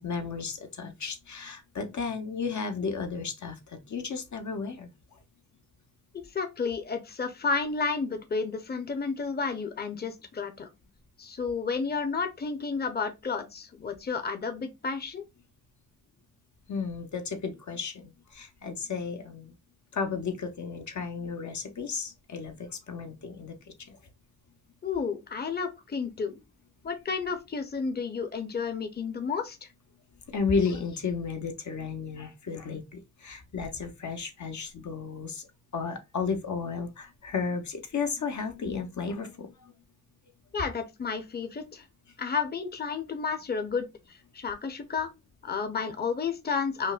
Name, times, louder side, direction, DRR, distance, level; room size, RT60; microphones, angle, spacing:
voice 1, 0.0-3.5 3.9-4.9 16.7-19.5 19.9-23.5 23.9-24.0 30.3-35.5 35.7-39.7, left 5 dB, 75° left, 0.8 m, -33 dB
voice 2, 6.1-10.7 11.2-15.2 24.8-26.4 26.8-29.7 40.5-41.9 42.2-45.1 45.4-46.9, left 5 dB, 35° left, 0.7 m, -31 dB
5.2 x 2.1 x 2.3 m
wide cardioid pair, 105°, 29 cm